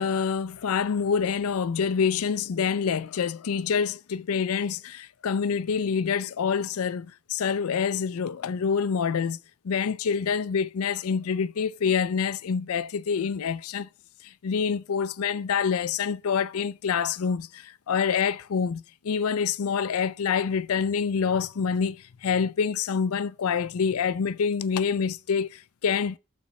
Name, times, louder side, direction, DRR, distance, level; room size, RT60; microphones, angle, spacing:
voice 1, 0.0-9.4 9.6-13.9 14.2-26.2, left 6 dB, 80° left, 0.4 m, -26 dB
11.5 x 4.3 x 4.1 m
head